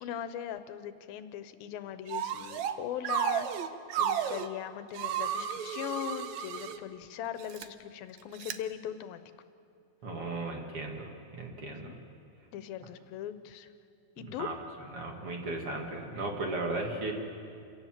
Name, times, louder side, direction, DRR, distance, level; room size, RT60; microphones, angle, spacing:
voice 1, 0.0-3.5 4.0-9.2 11.7-12.0 12.5-13.7 14.2-14.5, left 10 dB, 90° left, 11 dB, 2.7 m, -39 dB
sound 1, 2.1-2.7 3.0-4.5 4.9-6.8 7.4-7.6 8.4-8.5, right 9 dB, 75° right, 1.8 m, -33 dB
voice 2, 10.0-11.9 14.4-14.5 14.9-17.1, right 2 dB, 45° right, 1 dB, 2.5 m, -36 dB
28.0 x 17.5 x 7.5 m, 2.5 s
omnidirectional pair, 4.1 m